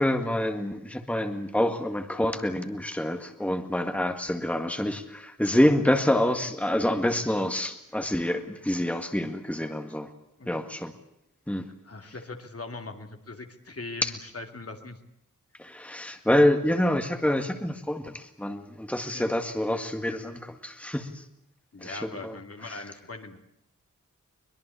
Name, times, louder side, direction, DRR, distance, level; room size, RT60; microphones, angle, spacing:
voice 1, 0.0-10.1 10.5-10.9 11.5-11.7 14.0-14.1 15.6-21.2 21.8-22.3 22.7-22.8, left 1 dB, 5° left, 6 dB, 1.8 m, -27 dB
voice 2, 11.8-15.0 19.1-19.3 21.7-23.4, left 3 dB, 50° left, 5 dB, 2.5 m, -40 dB
23.5 x 21.5 x 8.4 m, 0.79 s
wide cardioid pair, 90°, 31 cm